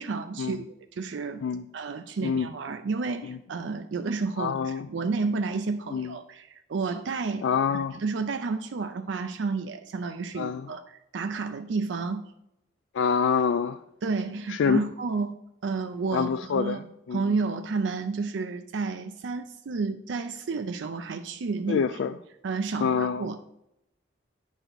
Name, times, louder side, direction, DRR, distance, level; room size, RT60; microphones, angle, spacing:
voice 1, 0.0-1.5 1.7-7.5 7.7-12.3 14.0-15.3 15.6-16.8 17.1-22.0 22.4-23.6, right 4 dB, 80° right, 8 dB, 0.4 m, -31 dB
voice 2, 4.4-4.9 5.9-6.1 7.4-8.0 10.4-10.7 12.9-13.8 14.5-14.8 16.1-16.8 17.1-17.2 21.7-22.1 22.8-23.3, left 6 dB, 80° left, 10 dB, 0.3 m, -26 dB
9.1 x 6.2 x 3.9 m, 0.83 s
head